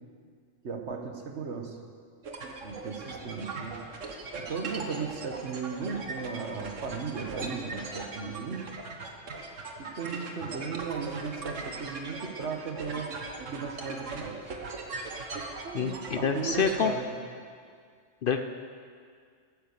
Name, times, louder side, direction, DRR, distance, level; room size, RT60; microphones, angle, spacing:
voice 1, 0.6-1.8 2.6-3.8 4.4-8.6 9.8-13.1 13.5-14.4 15.6-17.1, right 5 dB, 65° right, 3 dB, 1.6 m, -36 dB
sound 1, 2.2-16.9, right 3 dB, 85° right, 1.6 m, -39 dB
voice 2, 15.7-16.9 18.2-18.4, left 6 dB, 55° left, 7 dB, 0.7 m, -27 dB
14.5 x 9.9 x 6.7 m, 2.1 s
omnidirectional pair, 1.3 m